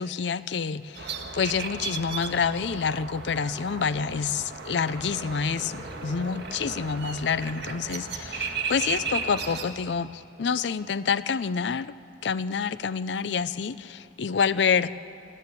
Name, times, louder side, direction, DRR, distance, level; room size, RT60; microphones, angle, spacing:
voice 1, 0.0-11.9 12.2-14.9, left 6 dB, 75° left, 16 dB, 0.5 m, -28 dB
sound 1, 0.9-9.6, right 4 dB, 65° right, 1.7 m, -35 dB
sound 2, 4.6-9.6, right 1 dB, 25° right, 6.2 m, -48 dB
24.0 x 15.0 x 8.3 m, 2.7 s
head